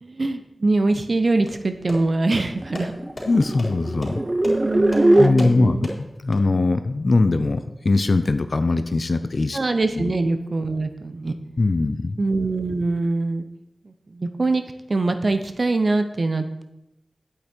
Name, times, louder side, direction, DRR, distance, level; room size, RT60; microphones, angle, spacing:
voice 1, 0.0-2.9 4.4-5.9 9.5-11.4 12.2-13.5 13.9-14.6 14.9-16.6, right 2 dB, 55° right, 8 dB, 0.9 m, -23 dB
sound 1, 1.5-6.4, left 1 dB, 40° left, 3.7 m, -35 dB
sound 2, 2.4-5.6, right 1 dB, 30° right, 0.5 m, -21 dB
voice 2, 3.3-4.2 5.2-9.6 10.0-10.1 11.6-12.2, left 3 dB, 55° left, 10 dB, 0.6 m, -21 dB
9.0 x 8.5 x 4.5 m, 0.87 s
wide cardioid pair, 55°, 0 cm